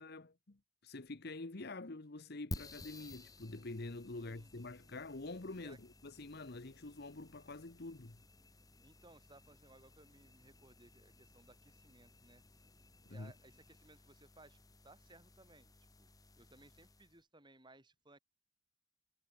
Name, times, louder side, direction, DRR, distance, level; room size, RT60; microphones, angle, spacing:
voice 1, 0.0-8.2 13.1-13.3, left 2 dB, 50° left, 1.1 m, -47 dB
sound 1, 2.5-17.2, left 1 dB, 15° left, 3.4 m, -55 dB
voice 2, 4.1-4.7 5.6-5.8 8.8-12.4 13.1-15.7 16.0-16.1 16.4-18.2, right 2 dB, 20° right, 5.6 m, -62 dB
head